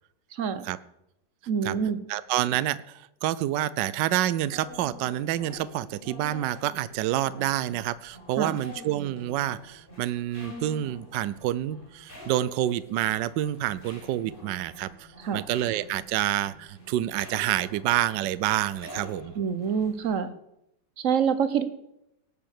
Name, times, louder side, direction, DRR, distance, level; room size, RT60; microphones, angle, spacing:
voice 1, 0.3-0.7 1.5-2.0 8.4-8.6 15.2-15.4 19.4-20.3 21.0-21.7, right 7 dB, 50° right, 12 dB, 1.1 m, -26 dB
voice 2, 2.1-19.3, right 13 dB, 75° right, 17 dB, 1.2 m, -28 dB
sound 1, 4.4-20.1, left 1 dB, 25° left, 4.8 m, -47 dB
18.5 x 7.2 x 6.6 m, 0.83 s
omnidirectional pair, 2.0 m